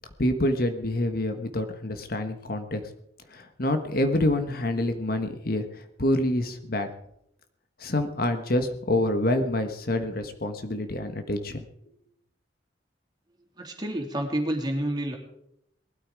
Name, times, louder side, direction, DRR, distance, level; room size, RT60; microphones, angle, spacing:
voice 1, 0.2-2.8 3.3-6.9 7.8-11.6, left 1 dB, 55° left, 7 dB, 1.4 m, -27 dB
voice 2, 13.6-15.2, right 1 dB, 25° right, 1 dB, 3.0 m, -29 dB
19.5 x 13.0 x 4.8 m, 0.75 s
head